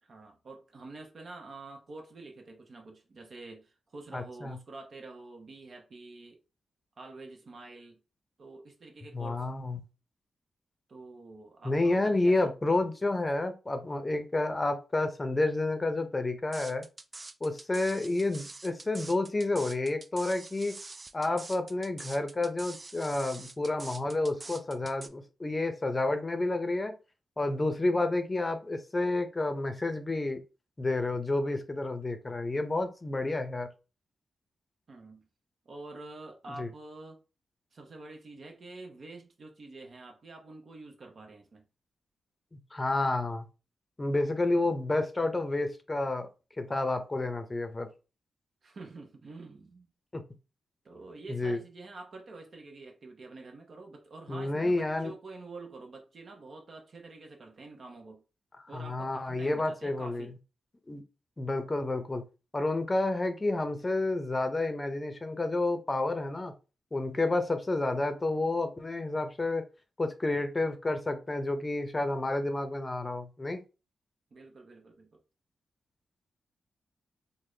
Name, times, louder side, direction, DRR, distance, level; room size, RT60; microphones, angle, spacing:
voice 1, 0.0-6.4 7.0-8.0 8.4-9.5 10.9-12.5 34.9-35.2 35.6-37.2 37.7-41.6 48.6-49.9 50.8-58.2 58.7-60.3 74.3-75.2, right 3 dB, 60° right, 0.9 m, -47 dB
voice 2, 4.1-4.6 9.1-9.8 11.6-16.9 17.4-20.7 21.1-26.9 27.4-30.4 30.8-33.7 36.6-36.7 42.5-43.5 44.0-46.3 46.6-47.9 50.1-50.2 51.3-51.6 54.3-55.1 58.7-60.3 60.9-61.0 61.4-62.2 62.5-66.5 66.9-69.6 70.0-73.6, left 2 dB, 30° left, 0.6 m, -30 dB
sound 1, 16.5-25.1, right 3 dB, 35° right, 0.3 m, -45 dB
3.5 x 2.1 x 3.2 m
cardioid pair, 50°, 0 cm